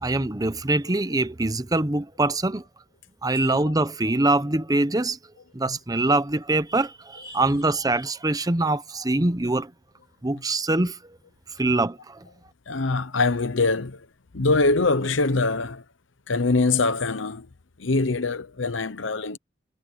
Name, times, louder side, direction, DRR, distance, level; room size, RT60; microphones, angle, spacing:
voice 1, 0.0-2.6 3.2-5.2 5.5-9.7 10.2-11.2 11.6-12.3, right 2 dB, 20° right, 0.8 m, -24 dB
voice 2, 3.3-3.7 5.7-5.8 7.2-7.4 9.1-9.3 10.3-10.4 12.7-14.1 14.3-15.8 16.3-17.5 17.8-19.4, left 3 dB, 80° left, 1.0 m, -24 dB
head